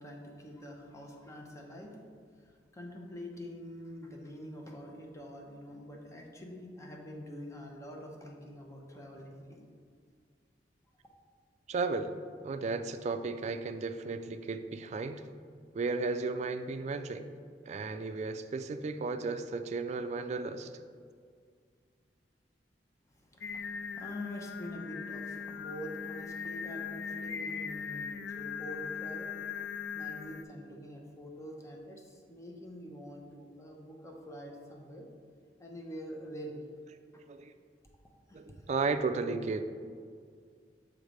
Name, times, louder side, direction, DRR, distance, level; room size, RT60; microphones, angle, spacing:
voice 1, 0.0-2.0 2.4-9.6 23.1-29.4 29.9-35.1 35.6-36.6 38.3-38.4, equal, 15° left, 0 dB, 0.8 m, -45 dB
voice 2, 11.7-12.1 12.4-15.2 15.7-17.3 17.7-20.7 37.3-37.5 38.3-39.6, right 4 dB, 40° right, 9 dB, 0.3 m, -34 dB
Singing, 23.4-30.4, left 6 dB, 70° left, 0.3 m, -39 dB
7.1 x 3.2 x 5.1 m, 2.1 s
head